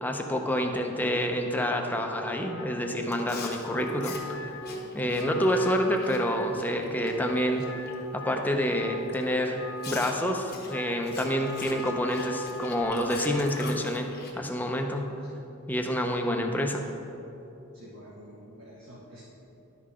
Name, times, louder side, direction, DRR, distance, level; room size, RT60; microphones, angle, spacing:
voice 1, 0.0-4.6 4.9-7.6 8.1-15.1 15.7-16.8, equal, 10° left, 3 dB, 0.6 m, -28 dB
Wind instrument woodwind instrument, 2.0-13.7, left 3 dB, 75° left, 0.8 m, -41 dB
Chewing mastication, 3.1-7.9 8.3-8.6 9.1-9.2 9.8-14.3, left 4 dB, 50° left, 1.0 m, -44 dB
voice 2, 17.7-19.2, equal, 65° right, -6 dB, 1.4 m, -48 dB
11.5 x 5.7 x 4.9 m, 2.9 s
head